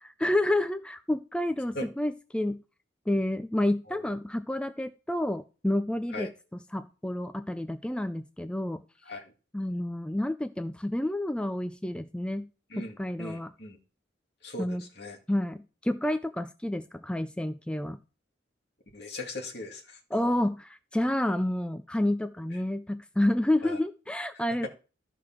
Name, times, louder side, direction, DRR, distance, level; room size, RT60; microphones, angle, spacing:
voice 1, 0.0-2.6 3.1-6.3 6.7-8.8 9.5-12.5 12.8-13.5 14.6-14.8 15.3-18.0 20.1-24.7, left 1 dB, 5° left, 10 dB, 0.4 m, -29 dB
voice 2, 12.7-13.8 14.4-15.2 18.9-20.0 23.6-23.8, left 2 dB, 55° left, 3 dB, 2.3 m, -39 dB
13.5 x 5.0 x 5.9 m, 0.35 s
head